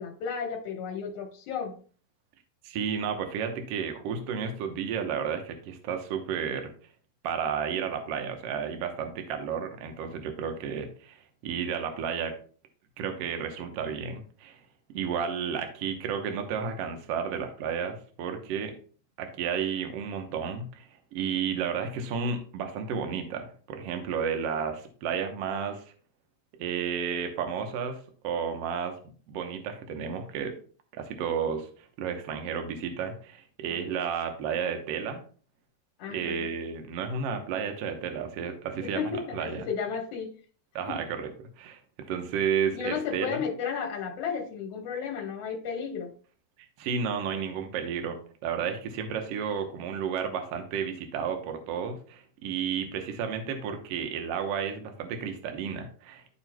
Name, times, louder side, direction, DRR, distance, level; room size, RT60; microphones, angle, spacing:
voice 1, 0.0-1.7 33.7-33.8 36.0-36.5 38.8-40.3 40.9-41.0 42.7-46.1, left 6 dB, 60° left, 3 dB, 2.3 m, -33 dB
voice 2, 2.6-6.7 7.2-12.3 13.0-14.6 14.9-18.7 19.2-25.8 26.6-30.5 30.9-35.2 36.1-39.7 40.7-41.3 41.6-43.4 46.8-56.4, right 7 dB, 65° right, 5 dB, 1.8 m, -32 dB
13.0 x 4.5 x 2.2 m, 0.41 s
omnidirectional pair, 3.4 m